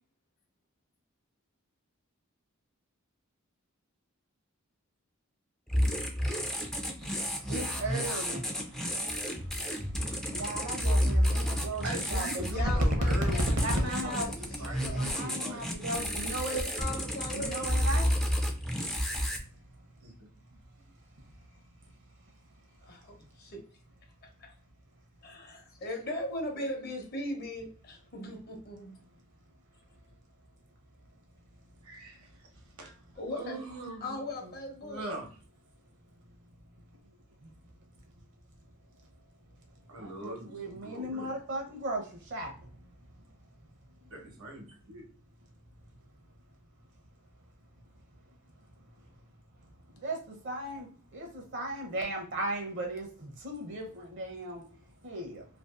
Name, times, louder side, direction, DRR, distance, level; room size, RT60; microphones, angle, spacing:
sound 1, 5.7-19.4, equal, ahead, 0.3 m, -31 dB
voice 1, 7.0-12.5 13.6-14.3 14.9-16.6 17.3-18.3 37.4-37.5 40.0-42.9 50.0-55.4, right 1 dB, 60° right, 2 dB, 0.6 m, -37 dB
voice 2, 11.8-15.6 20.0-20.1 31.8-32.3 32.8-33.0 33.3-34.5 34.8-35.3 39.9-41.4 44.1-45.0, right 1 dB, 80° right, 1 dB, 0.9 m, -42 dB
voice 3, 12.5-15.4 16.4-17.9 22.8-23.6 24.4-24.5 25.2-28.9 33.1-33.7 34.0-35.0, left 1 dB, 45° left, 2 dB, 0.7 m, -39 dB
2.5 x 2.3 x 2.3 m, 0.42 s
head